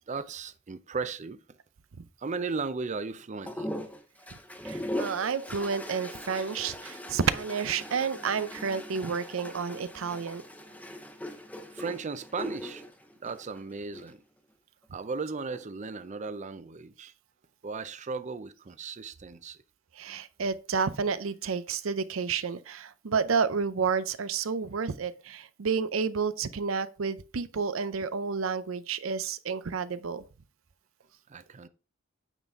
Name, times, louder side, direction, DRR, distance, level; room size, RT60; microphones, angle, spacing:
voice 1, 0.1-1.4 2.2-3.8 11.7-12.8 13.2-14.2 14.9-17.1 17.6-19.6 31.3-31.7, right 4 dB, 35° right, 0.5 m, -36 dB
sound 1, 3.5-14.1 15.3-15.9, left 1 dB, 10° left, 0.8 m, -40 dB
voice 2, 4.6-10.4 20.0-30.2, right 5 dB, 85° right, 0.6 m, -30 dB
9.0 x 4.2 x 3.6 m
head